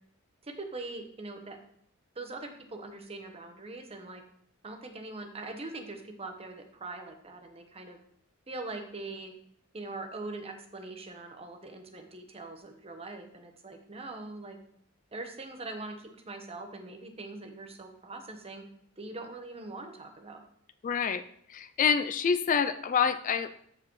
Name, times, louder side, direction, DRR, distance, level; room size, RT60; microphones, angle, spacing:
voice 1, 0.4-1.6 2.1-4.2 4.6-8.0 8.5-9.3 9.7-14.6 15.1-18.6 19.0-20.4, right 2 dB, 30° right, 5 dB, 1.0 m, -42 dB
voice 2, 20.8-21.2 21.5-23.5, left 6 dB, 40° left, 12 dB, 0.3 m, -27 dB
13.5 x 4.8 x 3.1 m, 0.68 s
head